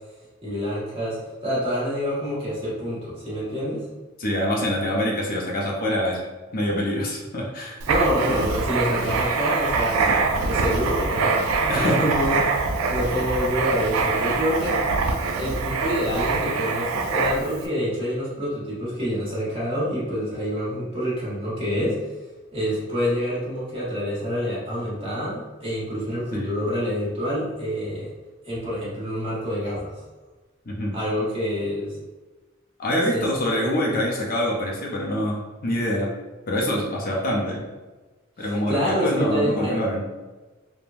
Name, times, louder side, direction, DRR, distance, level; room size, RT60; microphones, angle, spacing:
voice 1, 0.4-3.8 7.9-12.3 12.9-14.8 15.3-22.0 22.5-28.1 28.4-30.0 30.9-32.0 33.1-33.3 33.5-33.7 38.4-39.8, equal, 30° right, -8 dB, 1.1 m, -27 dB
voice 2, 4.2-6.2 6.5-7.8 11.7-12.1 26.3-26.5 30.7-30.9 32.8-36.1 36.5-37.6 38.4-40.1, equal, 45° left, -2 dB, 0.5 m, -25 dB
Writing, 7.8-17.6, right 4 dB, 90° right, 0.3 m, -24 dB
3.1 x 2.1 x 2.5 m, 1.2 s
head